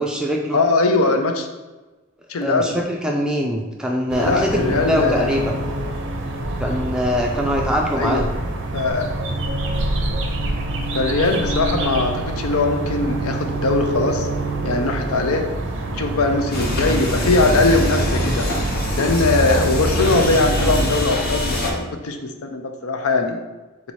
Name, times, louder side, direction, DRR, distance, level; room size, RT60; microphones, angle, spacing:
voice 1, 0.0-0.6 2.4-5.6 6.6-8.4, equal, 5° right, 0 dB, 0.4 m, -23 dB
voice 2, 0.5-1.5 2.3-2.8 4.1-5.4 8.0-8.3 8.7-9.1 10.9-14.3 14.6-15.4 15.9-18.5 19.0-23.4, left 3 dB, 75° left, 5 dB, 0.5 m, -20 dB
sound 1, 4.1-21.0, right 2 dB, 55° right, 0.5 m, -26 dB
sound 2, 16.5-21.7, left 1 dB, 45° left, 0.7 m, -23 dB
4.0 x 2.8 x 4.5 m, 1.2 s
head